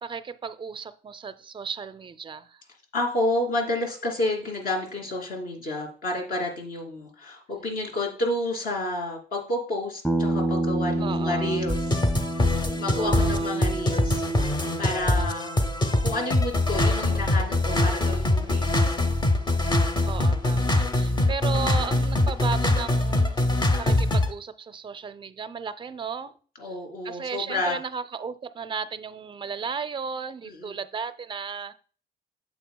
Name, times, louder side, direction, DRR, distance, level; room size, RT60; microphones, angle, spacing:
voice 1, 0.0-2.6 11.0-11.6 13.0-13.5 20.1-23.4 23.8-26.3 26.7-26.8 27.0-31.7, right 5 dB, 30° right, 0.4 m, -34 dB
voice 2, 2.9-12.1 12.4-15.6 16.0-18.9 20.8-21.3 26.6-27.8 30.5-30.8, left 1 dB, 60° left, 2.8 m, -30 dB
Bass guitar, 10.0-14.3, right 1 dB, 10° left, 1.1 m, -28 dB
sound 1, 11.7-24.3, left 1 dB, 25° left, 0.8 m, -23 dB
9.1 x 7.4 x 2.2 m
cardioid pair, 130°, 17 cm